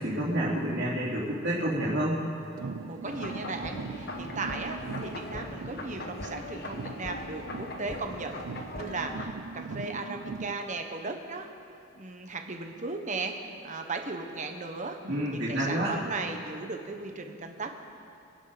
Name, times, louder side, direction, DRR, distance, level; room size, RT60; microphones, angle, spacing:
voice 1, 0.0-2.2 15.0-16.0, right 1 dB, 55° right, -11 dB, 3.6 m, -29 dB
sound 1, 2.5-6.4 6.6-10.6, right 4 dB, 90° right, 0.5 m, -41 dB
voice 2, 2.9-11.5 11.9-13.3 13.6-15.0 15.3-17.7, right 3 dB, 35° right, 4 dB, 1.3 m, -36 dB
sound 2, 3.0-9.3, left 1 dB, 50° left, 1.3 m, -40 dB
26.5 x 11.5 x 4.2 m, 2.5 s
head